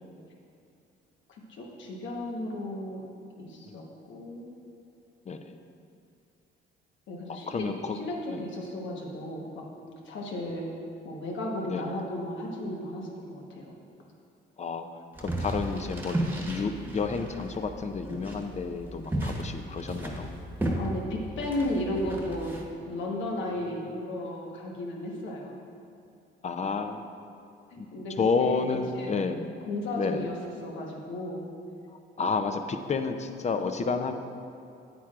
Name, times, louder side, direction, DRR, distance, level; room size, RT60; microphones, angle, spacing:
voice 1, 1.3-3.0 3.4-4.5 7.1-7.7 7.9-9.7 10.0-10.7 11.0-13.7 20.8-22.5 22.8-25.6 27.7-29.1 29.7-30.4 30.6-31.5, left 1 dB, 70° left, -1 dB, 1.2 m, -34 dB
voice 2, 7.3-8.0 8.3-8.4 11.7-11.8 14.6-14.9 15.2-16.2 16.5-20.3 26.4-27.0 27.8-27.9 28.2-29.6 30.0-30.2 32.2-34.1, left 4 dB, 35° left, 7 dB, 0.5 m, -30 dB
sound 1, 15.1-22.6, right 1 dB, 10° right, 1.2 m, -34 dB
9.1 x 8.8 x 2.4 m, 2.5 s
cardioid pair, 90°, 20 cm